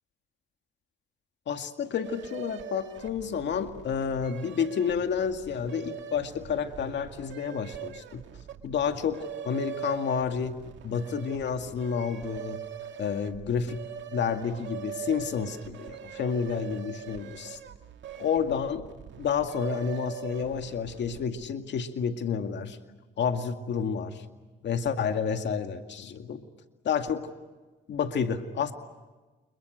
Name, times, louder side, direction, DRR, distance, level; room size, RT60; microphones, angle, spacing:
voice 1, 1.5-8.2 8.6-12.6 13.0-13.8 14.1-17.6 18.2-18.9 19.2-22.8 23.2-24.2 24.6-26.4 26.8-27.3 27.9-28.7, left 7 dB, 65° left, 6 dB, 2.1 m, -30 dB
sound 1, 2.0-21.5, right 9 dB, 70° right, 2.0 m, -42 dB
30.0 x 27.0 x 6.5 m, 1.2 s
cardioid pair, 90°, 20 cm